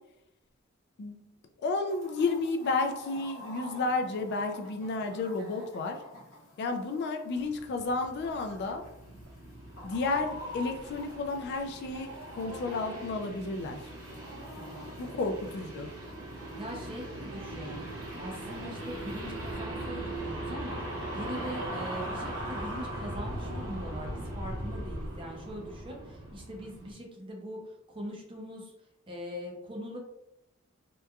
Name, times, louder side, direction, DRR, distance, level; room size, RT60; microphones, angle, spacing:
voice 1, 1.0-1.3 1.6-6.0 6.6-8.8 9.8-13.8 15.0-15.9, left 3 dB, 55° left, 5 dB, 0.3 m, -32 dB
Chicken rooster, 1.9-19.6, equal, 75° left, 0.9 m, -49 dB
sound 1, 7.3-26.9, right 1 dB, 75° right, 0.9 m, -40 dB
voice 2, 14.6-15.1 16.6-17.8 18.2-20.8 21.1-27.6 27.9-28.7 29.1-30.0, equal, 25° right, -1 dB, 0.5 m, -41 dB
2.8 x 2.3 x 2.3 m, 0.87 s
head